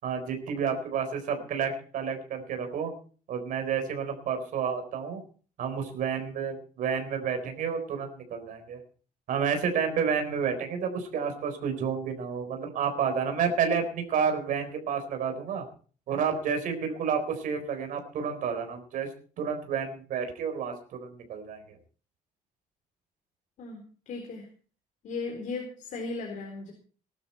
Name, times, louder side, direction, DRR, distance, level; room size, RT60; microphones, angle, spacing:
voice 1, 0.0-2.9 3.3-5.2 5.6-8.8 9.3-15.6 16.1-19.1 19.4-20.7 21.0-21.8, right 6 dB, 70° right, 5 dB, 4.2 m, -30 dB
voice 2, 23.6-24.5 25.0-26.7, left 3 dB, 65° left, 1 dB, 4.1 m, -36 dB
20.0 x 12.0 x 4.4 m, 0.41 s
cardioid pair, 170°, 14 cm